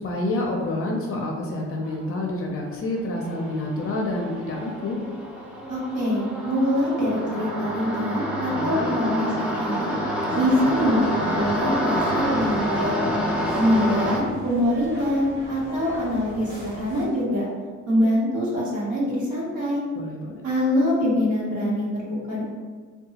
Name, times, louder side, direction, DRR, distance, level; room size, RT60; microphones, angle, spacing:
voice 1, 0.0-5.0 8.5-8.9 10.3-10.4 19.9-20.4, left 2 dB, 50° left, -1 dB, 0.5 m, -28 dB
sound 1, 1.8-2.1 2.5-14.2, equal, 5° right, 0.5 m, -28 dB
voice 2, 5.7-10.0 10.3-13.0 13.6-17.5 17.9-19.8 20.4-22.4, equal, 80° right, -6 dB, 1.0 m, -24 dB
sound 2, 10.3-17.1, left 2 dB, 60° right, 1.1 m, -37 dB
2.7 x 2.2 x 2.8 m, 1.5 s
cardioid pair, 90°, 30 cm